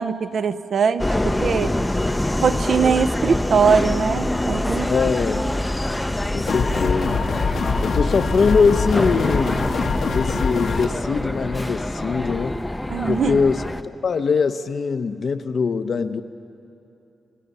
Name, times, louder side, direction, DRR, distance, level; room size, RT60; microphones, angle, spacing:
voice 1, 0.0-1.8 2.4-4.9 12.9-13.4, right 6 dB, 60° right, 13 dB, 0.6 m, -21 dB
Subway metro underground, 1.0-13.8, left 1 dB, 10° left, 0.6 m, -25 dB
voice 2, 4.9-5.5 6.3-7.2 7.8-9.6 10.1-12.6 13.1-16.2, left 5 dB, 55° left, 11 dB, 0.7 m, -22 dB
sound 1, 6.5-10.9, left 5 dB, 85° left, 1.5 m, -24 dB
28.0 x 18.0 x 5.5 m, 2.8 s
wide cardioid pair, 155°, 0 cm